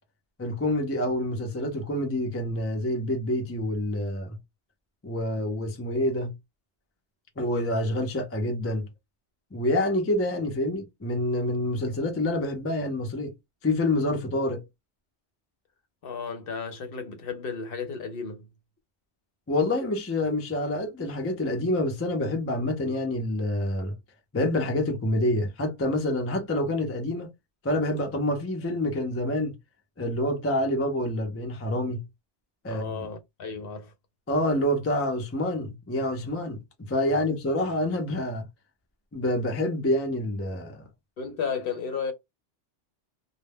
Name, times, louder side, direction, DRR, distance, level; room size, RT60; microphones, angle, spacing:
voice 1, 0.4-4.4 5.0-6.3 7.4-8.9 9.5-13.3 13.6-14.6 19.5-23.9 24.3-27.3 27.6-29.5 30.0-32.0 32.6-32.9 34.3-38.5 39.1-40.8, left 1 dB, 25° left, 0.3 m, -27 dB
voice 2, 16.0-18.5 32.7-33.9 37.1-37.2 41.2-42.1, left 5 dB, 60° left, 0.7 m, -33 dB
2.2 x 2.1 x 3.3 m
omnidirectional pair, 1.2 m